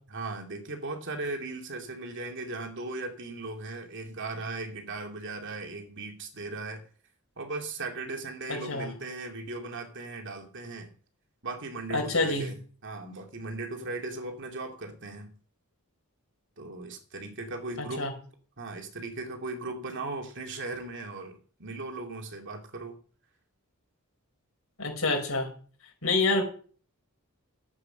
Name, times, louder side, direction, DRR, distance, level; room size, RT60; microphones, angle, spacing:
voice 1, 0.1-6.8 7.4-10.9 11.4-15.3 16.6-18.1 18.6-23.0, right 2 dB, 55° right, 3 dB, 2.6 m, -38 dB
voice 2, 8.5-8.9 11.9-12.5 17.8-18.1 24.8-25.5 26.0-26.4, left 3 dB, 70° left, 2 dB, 5.8 m, -27 dB
13.0 x 9.0 x 5.9 m, 0.43 s
head